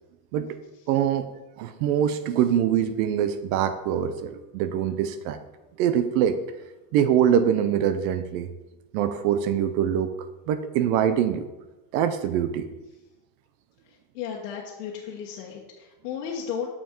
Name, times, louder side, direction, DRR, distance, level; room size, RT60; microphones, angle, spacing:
voice 1, 0.9-1.3 1.6-5.4 5.8-6.4 6.9-8.5 8.9-10.1 10.5-11.5 11.9-12.7, right 9 dB, 65° right, 11 dB, 0.7 m, -24 dB
voice 2, 13.9-16.7, left 7 dB, 85° left, -3 dB, 1.3 m, -34 dB
7.0 x 5.9 x 4.4 m, 1.0 s
cardioid pair, 170°, 46 cm